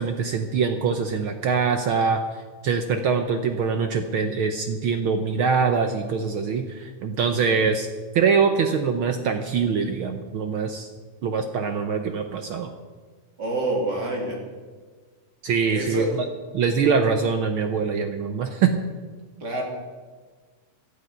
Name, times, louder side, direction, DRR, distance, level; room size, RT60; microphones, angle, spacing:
voice 1, 0.0-2.2 2.6-7.9 8.1-10.9 11.2-12.7 15.4-16.3 16.5-18.7, right 5 dB, 80° right, 6 dB, 1.1 m, -23 dB
voice 2, 13.4-14.4 15.7-16.1 19.4-19.6, right 1 dB, 35° right, -1 dB, 3.5 m, -27 dB
17.5 x 12.0 x 5.8 m, 1.5 s
omnidirectional pair, 3.5 m